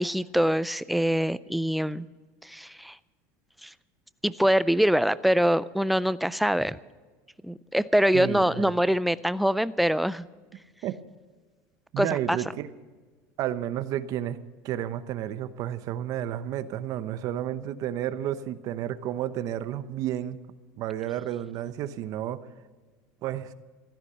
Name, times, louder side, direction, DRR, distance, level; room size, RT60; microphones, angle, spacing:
voice 1, 0.0-2.1 2.4-3.0 3.6-3.7 4.2-6.8 7.4-10.3 12.0-12.4, equal, ahead, 16 dB, 0.3 m, -24 dB
voice 2, 8.1-8.7 10.8-11.0 11.9-12.7 13.4-14.4 14.6-20.4 20.8-22.4 23.2-23.5, right 11 dB, 45° right, 13 dB, 0.9 m, -31 dB
15.5 x 13.0 x 5.7 m, 1.4 s
cardioid pair, 150°, 8 cm